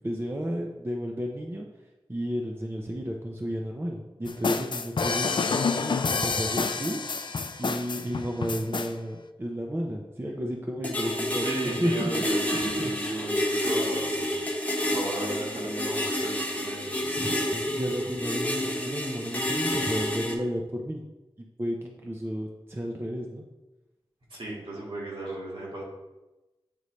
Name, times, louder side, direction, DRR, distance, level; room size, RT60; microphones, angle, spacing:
voice 1, 0.0-1.7 2.1-7.0 7.6-12.1 12.6-13.0 17.2-21.0 21.4-23.4, equal, 25° right, 0 dB, 0.6 m, -32 dB
sound 1, 4.3-8.9, left 4 dB, 50° left, 0.3 m, -28 dB
sound 2, 10.8-20.3, left 1 dB, 15° left, 1.0 m, -29 dB
voice 2, 11.3-14.4 14.8-17.1 24.3-25.8, right 1 dB, 60° right, -4 dB, 2.0 m, -34 dB
8.3 x 3.9 x 3.2 m, 1.1 s
wide cardioid pair, 80°, 10 cm